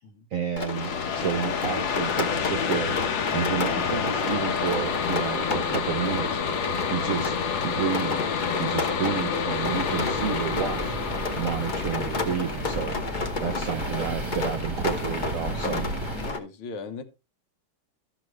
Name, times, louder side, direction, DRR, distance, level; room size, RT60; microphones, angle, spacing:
voice 1, 0.3-3.0 3.3-6.4 6.9-7.4 7.6-11.0 11.3-15.9, right 8 dB, 70° right, 0.8 m, -31 dB
Rain, 0.6-16.4, left 4 dB, 50° left, 0.5 m, -33 dB
sound 1, 0.7-14.0, left 6 dB, 70° left, 1.7 m, -29 dB
sound 2, 9.6-16.3, right 2 dB, 20° right, 1.0 m, -34 dB
voice 2, 16.2-17.0, left 4 dB, 85° left, 2.0 m, -38 dB
13.5 x 6.2 x 3.2 m
omnidirectional pair, 2.2 m